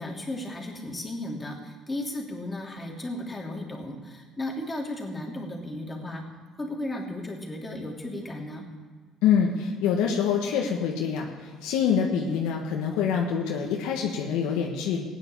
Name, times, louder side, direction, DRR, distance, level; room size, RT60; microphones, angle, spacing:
voice 1, 0.0-6.2 6.6-8.7, left 1 dB, 20° left, -1 dB, 3.1 m, -35 dB
voice 2, 9.2-15.0, left 7 dB, 85° left, 0 dB, 1.4 m, -25 dB
15.5 x 9.8 x 7.1 m, 1.5 s
supercardioid pair, 90°, 0 cm